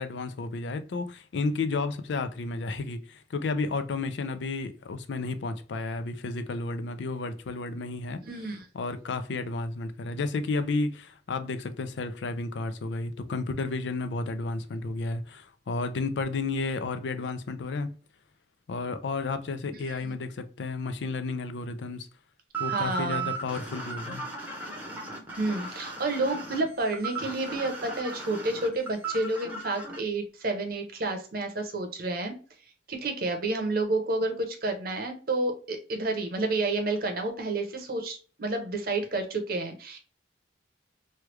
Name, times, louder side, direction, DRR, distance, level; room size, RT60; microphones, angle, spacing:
voice 1, 0.0-8.2 8.7-17.9 18.7-22.1 22.6-24.2, left 3 dB, 80° left, 0.4 m, -32 dB
voice 2, 8.2-8.7 19.9-20.0 22.7-23.3 25.4-32.3 32.9-40.0, right 2 dB, 55° right, 0.8 m, -30 dB
sound 1, 22.5-30.0, right 4 dB, 10° right, 0.8 m, -36 dB
3.2 x 2.3 x 3.0 m
head